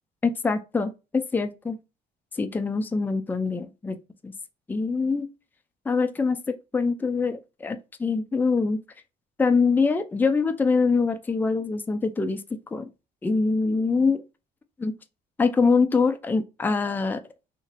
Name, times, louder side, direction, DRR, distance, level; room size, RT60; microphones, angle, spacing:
voice 1, 0.2-1.8 2.4-4.0 4.2-4.3 4.7-5.3 5.9-6.4 6.7-8.8 9.4-12.4 12.7-12.9 13.2-14.2 14.8-14.9 15.4-17.2, left 4 dB, 10° left, 0.4 m, -24 dB
2.9 x 2.6 x 2.5 m
cardioid pair, 110°, 17 cm